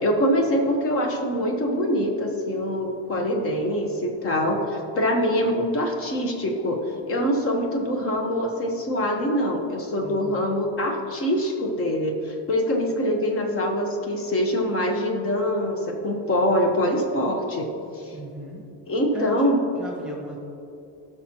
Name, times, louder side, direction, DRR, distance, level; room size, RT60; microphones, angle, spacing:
voice 1, 0.0-6.8 7.1-17.7 17.9-18.1 18.9-19.6, equal, 30° left, 2 dB, 1.1 m, -24 dB
voice 2, 10.0-10.4 18.1-18.6 19.1-20.4, right 1 dB, ahead, -2 dB, 1.4 m, -36 dB
15.5 x 6.4 x 2.9 m, 2.8 s
cardioid pair, 170°, 47 cm